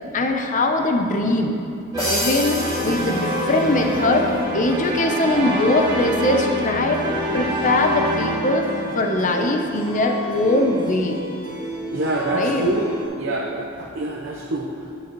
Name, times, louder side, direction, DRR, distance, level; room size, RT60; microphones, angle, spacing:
voice 1, 0.1-1.6 2.1-8.7 8.9-11.2 12.3-12.6, left 2 dB, 40° left, 4 dB, 0.6 m, -21 dB
sound 1, 1.9-13.1, equal, 20° right, 1.3 m, -27 dB
sound 2, 2.0-4.0, equal, 20° left, 2.3 m, -28 dB
voice 2, 11.9-14.9, right 2 dB, 60° right, -2 dB, 0.8 m, -26 dB
9.5 x 9.4 x 3.0 m, 2.6 s
head